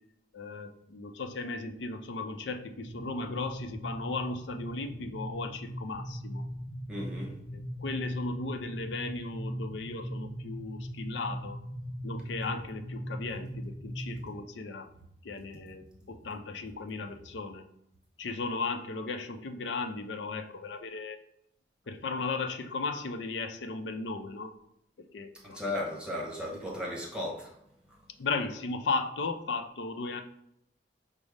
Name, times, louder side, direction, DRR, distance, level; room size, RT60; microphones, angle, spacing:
voice 1, 0.3-6.4 7.5-11.6 12.0-14.9 15.2-17.6 18.2-21.2 21.9-24.6 25.1-25.7 26.7-26.8 28.2-30.2, left 3 dB, 85° left, 0.5 m, -36 dB
sound 1, 2.8-14.3, equal, 20° left, 1.7 m, -39 dB
voice 2, 6.9-7.4 25.4-27.6, left 1 dB, 5° right, 1.0 m, -35 dB
5.2 x 2.0 x 4.8 m
head